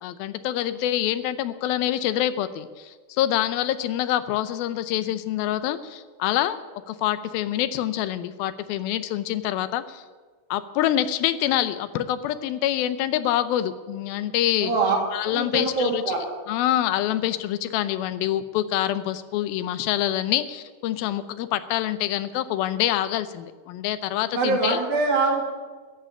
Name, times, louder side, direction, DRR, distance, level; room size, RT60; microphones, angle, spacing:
voice 1, 0.0-6.6 6.9-10.0 10.5-14.7 15.1-16.0 16.5-24.8, left 12 dB, 90° left, 13 dB, 2.6 m, -26 dB
voice 2, 14.6-15.0 15.3-16.2 24.3-25.4, right 3 dB, 75° right, -1 dB, 4.4 m, -23 dB
13.5 x 7.6 x 9.8 m, 1.4 s
omnidirectional pair, 4.2 m